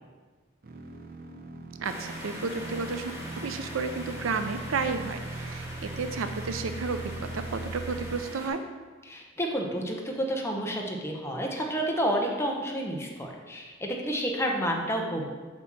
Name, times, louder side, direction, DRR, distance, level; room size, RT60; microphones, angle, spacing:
sound 1, 0.6-8.2, right 2 dB, 50° right, 0.6 m, -40 dB
sound 2, 1.8-8.5, equal, 15° right, 1.6 m, -42 dB
voice 1, 1.8-3.1 3.4-8.6, right 4 dB, 90° right, 9 dB, 0.5 m, -32 dB
voice 2, 9.1-15.3, equal, 15° left, 0 dB, 0.9 m, -30 dB
7.5 x 3.0 x 6.1 m, 1.4 s
head